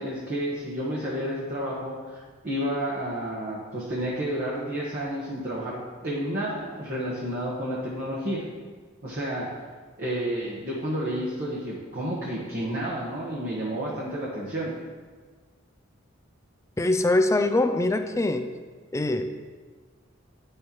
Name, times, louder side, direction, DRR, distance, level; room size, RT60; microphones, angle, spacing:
voice 1, 0.0-8.4 9.0-9.5 10.0-14.7, equal, 50° right, -6 dB, 1.3 m, -31 dB
voice 2, 16.8-18.5 18.9-19.3, left 2 dB, 15° left, 8 dB, 0.4 m, -23 dB
9.8 x 6.3 x 3.1 m, 1.5 s
head